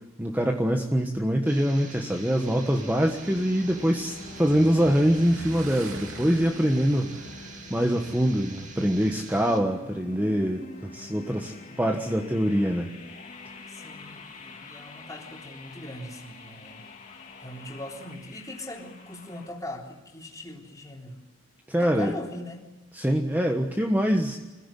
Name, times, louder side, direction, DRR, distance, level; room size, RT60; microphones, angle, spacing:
voice 1, 0.2-7.1 7.7-12.9 21.7-22.1 22.9-24.4, equal, 10° right, 3 dB, 1.3 m, -24 dB
sound 1, 1.5-9.6, right 4 dB, 40° right, 2.7 m, -46 dB
sound 2, 1.7-19.5, left 2 dB, 40° left, 2.6 m, -46 dB
Motorcycle / Engine, 2.6-9.6, right 1 dB, 75° right, 3.9 m, -44 dB
voice 2, 13.7-16.8 17.4-21.2 21.8-22.6, left 1 dB, 15° left, 0 dB, 3.7 m, -40 dB
26.0 x 15.5 x 10.0 m, 1.1 s
head